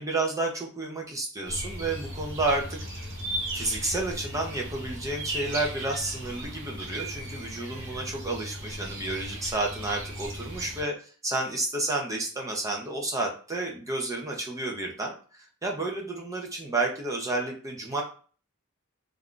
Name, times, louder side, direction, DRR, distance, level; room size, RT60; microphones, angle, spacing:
voice 1, 0.0-2.8 3.3-18.0, right 2 dB, 15° right, 1 dB, 0.4 m, -31 dB
sound 1, 1.4-10.8, right 1 dB, 60° right, 0.8 m, -37 dB
2.4 x 2.2 x 3.6 m, 0.40 s
head